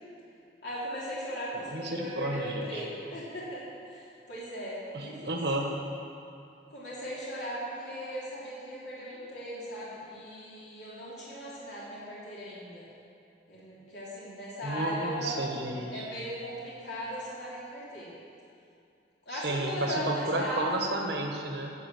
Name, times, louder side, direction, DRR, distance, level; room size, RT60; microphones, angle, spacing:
voice 1, 0.6-5.3 6.7-12.9 13.5-15.4 15.9-18.2 19.2-21.0, equal, 65° left, -8 dB, 3.2 m, -38 dB
voice 2, 1.7-2.8 4.9-5.7 14.6-16.1 19.3-21.7, right 2 dB, 60° right, 1 dB, 1.4 m, -32 dB
12.5 x 7.2 x 7.1 m, 2.5 s
head